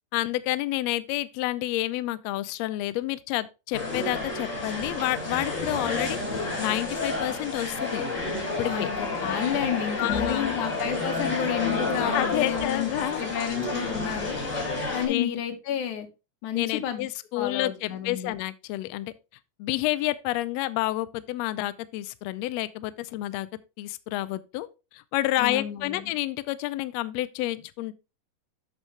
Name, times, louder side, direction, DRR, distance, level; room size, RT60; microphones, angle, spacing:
voice 1, 0.1-6.2 6.6-8.0 8.6-8.9 10.0-10.5 12.1-13.2 15.1-15.4 16.5-19.1 19.6-23.5 23.8-24.7 24.9-27.9, left 16 dB, 90° left, 1.5 m, -29 dB
sound 1, 3.7-15.1, left 3 dB, 25° left, 3.7 m, -30 dB
voice 2, 8.7-12.9 13.2-14.4 14.9-16.1 16.4-17.1 17.4-18.3 25.4-26.1, left 10 dB, 70° left, 2.5 m, -30 dB
8.4 x 6.4 x 3.2 m
omnidirectional pair, 3.6 m